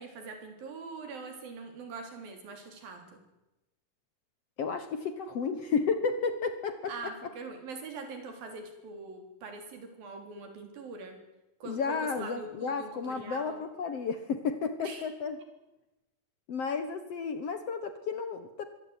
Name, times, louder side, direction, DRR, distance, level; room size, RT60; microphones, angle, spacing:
voice 1, 0.0-3.2 6.9-11.2 11.6-13.6 14.8-15.1, right 3 dB, 75° right, 6 dB, 5.4 m, -43 dB
voice 2, 4.6-7.1 11.7-15.4 16.5-18.6, left 5 dB, 55° left, 10 dB, 1.9 m, -32 dB
23.5 x 17.5 x 9.6 m, 0.98 s
omnidirectional pair, 4.1 m